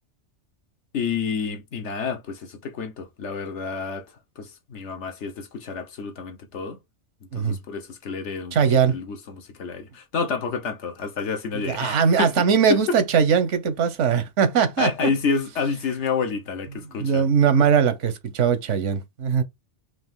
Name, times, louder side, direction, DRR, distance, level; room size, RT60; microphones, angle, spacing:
voice 1, 0.9-4.1 4.4-6.8 7.3-8.6 8.9-12.4 12.7-13.0 13.6-13.7 14.8-17.2, left 5 dB, 75° left, 1.2 m, -29 dB
voice 2, 8.5-9.0 11.6-15.1 17.0-19.4, right 7 dB, 85° right, 1.2 m, -20 dB
4.7 x 2.6 x 3.6 m
omnidirectional pair, 1.2 m